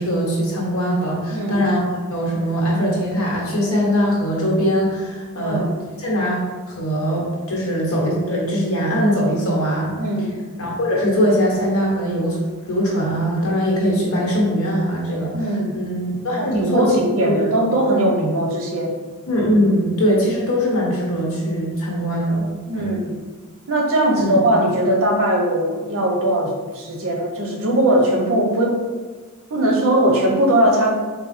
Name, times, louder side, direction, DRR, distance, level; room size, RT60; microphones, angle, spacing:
voice 1, 0.0-5.7 6.0-6.4 6.7-9.9 10.6-15.3 15.7-16.9 17.2-17.5 19.3-22.5 22.8-22.9 24.1-24.4, equal, 65° left, -3 dB, 1.1 m, -21 dB
voice 2, 1.3-1.7 5.4-5.8 10.0-10.3 15.3-15.7 16.4-18.9 22.7-23.1 23.7-28.8 29.5-30.9, right 1 dB, 65° right, 1 dB, 0.8 m, -19 dB
4.1 x 2.3 x 4.1 m, 1.4 s
head